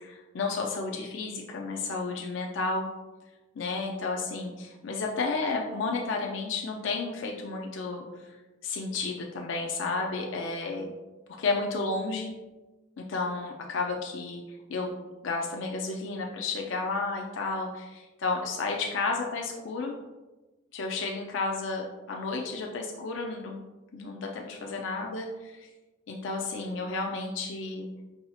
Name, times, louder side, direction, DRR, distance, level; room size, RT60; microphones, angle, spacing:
voice 1, 0.0-2.9 3.6-8.3 8.6-10.9 11.4-12.3 13.0-14.4 14.7-14.9 15.2-19.9 20.7-23.6 23.9-25.7 26.1-27.9, left 3 dB, 70° left, 1 dB, 0.4 m, -32 dB
5.5 x 2.7 x 2.3 m, 1.1 s
head